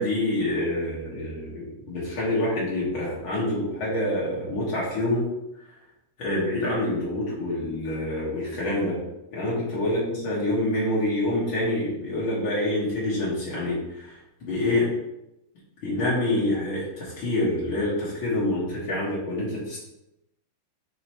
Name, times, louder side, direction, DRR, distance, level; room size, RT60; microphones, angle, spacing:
voice 1, 0.0-5.2 6.2-9.0 9.3-14.9 15.8-19.8, left 1 dB, 75° left, -8 dB, 2.5 m, -26 dB
9.4 x 3.4 x 3.0 m, 0.87 s
omnidirectional pair, 2.2 m